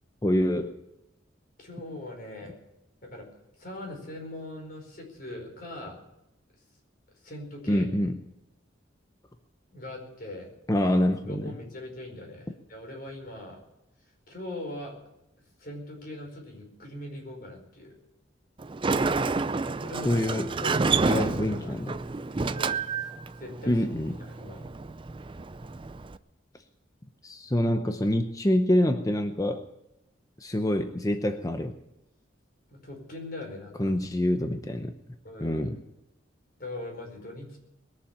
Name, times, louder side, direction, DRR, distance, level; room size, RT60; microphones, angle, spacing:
voice 1, 0.2-0.8 7.7-8.2 10.7-11.5 20.0-20.5 21.1-22.0 23.7-24.1 27.2-29.7 30.4-31.7 33.8-34.9 35.4-35.8, left 1 dB, 20° left, 7 dB, 0.7 m, -26 dB
voice 2, 1.6-2.6 3.0-3.3 3.6-6.0 7.2-7.9 9.7-10.5 11.3-13.6 14.3-14.9 15.6-17.9 19.8-21.7 22.3-23.1 23.4-23.8 24.2-24.6 32.7-33.9 35.2-35.7 36.6-37.6, left 1 dB, 50° left, 1 dB, 4.8 m, -41 dB
Sliding door, 18.6-26.2, right 4 dB, 25° right, 0.4 m, -29 dB
21.0 x 7.2 x 8.7 m, 0.89 s
head